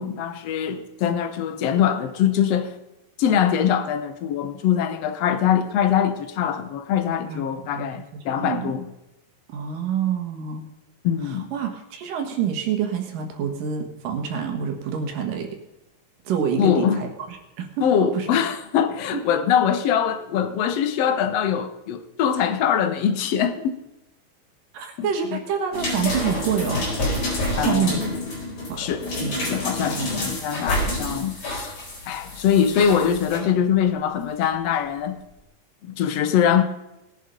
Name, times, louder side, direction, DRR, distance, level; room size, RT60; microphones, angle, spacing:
voice 1, 0.0-2.7 3.2-8.9 11.0-11.5 16.6-17.0 17.8-23.8 25.0-25.4 27.6-28.1 28.8-29.1 29.4-31.7 32.1-35.2 35.8-36.6, left 8 dB, 70° left, 1.6 m, -23 dB
voice 2, 7.3-7.9 8.1-8.7 9.5-10.7 11.2-15.5 16.3-17.1 17.6-17.9 18.1-18.3 19.1-19.2 24.7-26.9 27.6-28.0 28.7-28.8 29.2-29.5 29.9-30.1, right 8 dB, 75° right, 3.0 m, -27 dB
sound 1, 25.7-33.4 34.4-34.5, left 1 dB, 50° left, 5.6 m, -28 dB
20.0 x 7.4 x 5.3 m
omnidirectional pair, 4.0 m